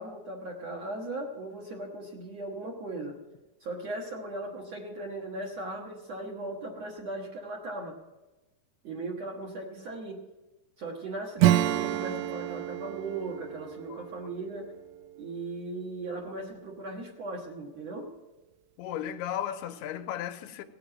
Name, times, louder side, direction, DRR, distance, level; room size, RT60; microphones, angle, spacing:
voice 1, 0.0-3.2 3.6-8.0 8.8-10.2 10.8-14.7 15.2-18.1, right 2 dB, 55° right, 1.9 m, -38 dB
Acoustic guitar / Strum, 11.4-15.7, right 14 dB, 80° right, 2.4 m, -29 dB
voice 2, 18.8-20.6, left 10 dB, 85° left, 2.7 m, -35 dB
18.0 x 7.8 x 7.5 m
omnidirectional pair, 4.7 m